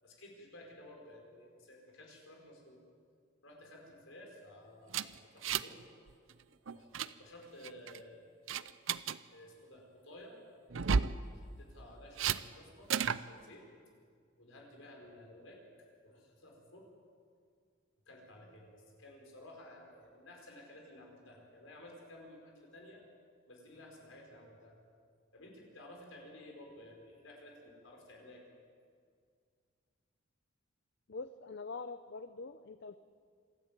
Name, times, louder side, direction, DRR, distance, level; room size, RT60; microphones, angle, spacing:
voice 1, 0.0-2.8 3.4-5.8 6.7-8.4 9.3-10.3 11.3-13.7 14.4-15.6 16.0-16.9 18.1-23.0 23.5-24.7 25.3-28.5, left 1 dB, 70° left, 0 dB, 5.4 m, -54 dB
sound 1, 4.9-5.8 6.1-6.3 6.7-7.1 7.6-8.0 8.5-9.2 10.7-11.2 12.2-12.4 12.9-13.2, right 6 dB, 70° right, 0.6 m, -32 dB
voice 2, 31.1-33.0, left 4 dB, 55° left, 11 dB, 0.6 m, -44 dB
26.5 x 12.5 x 9.0 m, 2.1 s
head